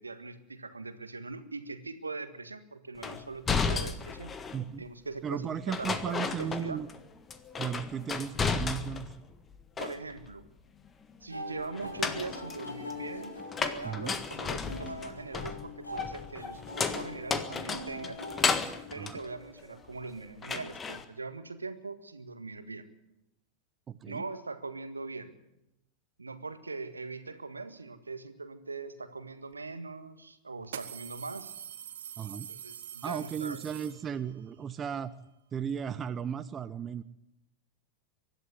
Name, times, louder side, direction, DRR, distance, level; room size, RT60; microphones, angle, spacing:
voice 1, 0.0-4.3 4.8-6.8 9.8-10.4 11.2-13.4 13.6-18.2 18.9-22.8 24.1-25.3 26.2-31.5 32.5-33.6, right 3 dB, 80° right, 10 dB, 1.6 m, -41 dB
sound 1, 3.0-4.7 5.7-7.0 7.3-9.2 9.5-10.3 11.7-20.0 20.4-21.0, left 5 dB, 20° left, 1.6 m, -34 dB
voice 2, 4.5-4.8 5.2-6.9 7.6-9.1 13.8-14.2 19.0-19.2 23.9-24.2 32.2-32.5 33.0-35.1 35.5-37.0, right 8 dB, 25° right, 13 dB, 0.8 m, -35 dB
sound 2, 11.3-19.2, left 2 dB, 80° left, 4.5 m, -43 dB
sound 3, 29.5-29.6 30.6-34.4, right 9 dB, 60° right, 1.4 m, -44 dB
24.0 x 12.0 x 9.6 m, 0.89 s
figure-of-eight pair, 90°, 0 cm